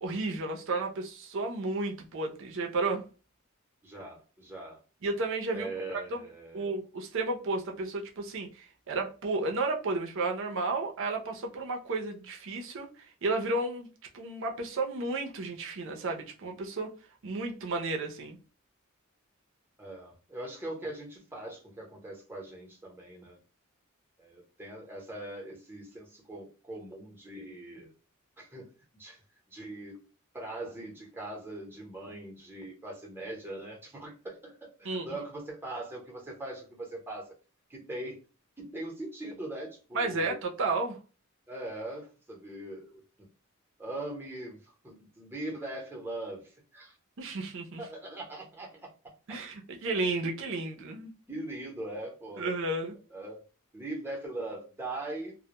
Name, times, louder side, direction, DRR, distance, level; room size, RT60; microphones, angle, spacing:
voice 1, 0.0-3.1 5.0-5.7 6.1-6.2 6.5-13.9 14.1-16.9 17.2-18.4 34.8-35.2 39.9-41.0 47.2-47.8 49.3-51.1 52.4-52.9, right 3 dB, 65° right, 0.5 m, -32 dB
voice 2, 3.8-4.8 5.5-6.7 19.8-23.4 24.2-27.9 28.4-28.7 28.9-29.2 29.5-30.0 30.3-37.3 37.7-38.2 38.6-40.4 41.5-43.0 43.8-47.0 47.8-48.8 51.3-52.5 53.1-53.4 53.7-55.4, right 2 dB, 10° right, 0.8 m, -41 dB
2.1 x 2.1 x 2.8 m
head